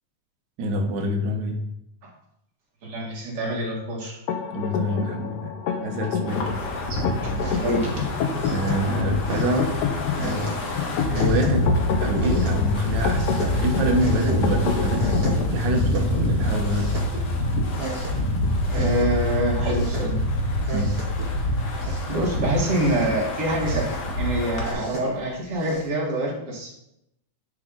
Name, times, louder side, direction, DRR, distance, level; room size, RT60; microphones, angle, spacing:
voice 1, 0.6-1.6 4.5-5.5 5.8-6.5 8.5-9.9 10.2-10.6 11.1-11.6 12.0-15.2 15.5-16.9 20.7-20.9, equal, 80° right, 2 dB, 1.0 m, -26 dB
voice 2, 2.8-4.2 7.2-7.9 18.7-20.2 22.1-23.9 24.2-26.7, right 1 dB, 50° right, -3 dB, 2.7 m, -26 dB
sound 1, 4.3-15.3, left 7 dB, 85° left, 2.3 m, -29 dB
Wind, 6.3-24.7, left 1 dB, 60° left, 2.2 m, -26 dB
sound 2, 6.8-25.9, right 1 dB, 25° right, 1.3 m, -38 dB
9.8 x 4.7 x 3.9 m, 0.79 s
omnidirectional pair, 3.5 m